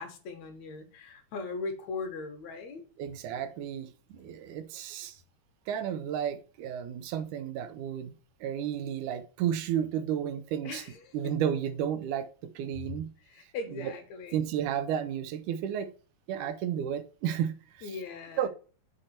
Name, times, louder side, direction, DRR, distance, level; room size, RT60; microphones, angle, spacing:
voice 1, 0.0-2.8 10.6-11.1 13.3-14.4 17.8-18.5, left 4 dB, 70° left, 2.4 m, -39 dB
voice 2, 3.0-5.2 5.7-8.1 8.4-10.8 11.1-13.1 13.7-13.9 14.3-15.9 16.3-18.0 18.4-18.5, right 9 dB, 80° right, 2.2 m, -32 dB
7.5 x 4.8 x 4.3 m
omnidirectional pair, 3.5 m